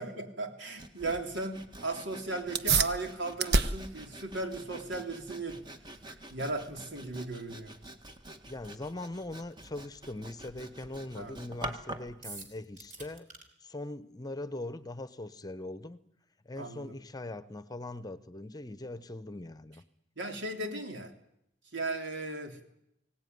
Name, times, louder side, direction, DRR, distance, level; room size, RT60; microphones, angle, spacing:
voice 1, 0.0-5.6 6.3-7.7 11.2-11.4 16.6-16.9 20.2-21.1 21.7-22.7, right 2 dB, 85° right, 5 dB, 3.4 m, -36 dB
Sawing, 0.8-12.2, right 1 dB, 25° right, 1.8 m, -47 dB
sound 1, 2.5-12.5, right 4 dB, 65° right, 1.1 m, -35 dB
voice 2, 8.5-13.3 13.6-16.0 16.4-19.8, left 2 dB, 20° left, 13 dB, 1.0 m, -41 dB
sound 2, 12.2-13.4, right 3 dB, 45° right, 3.6 m, -46 dB
23.5 x 18.0 x 9.5 m, 0.81 s
head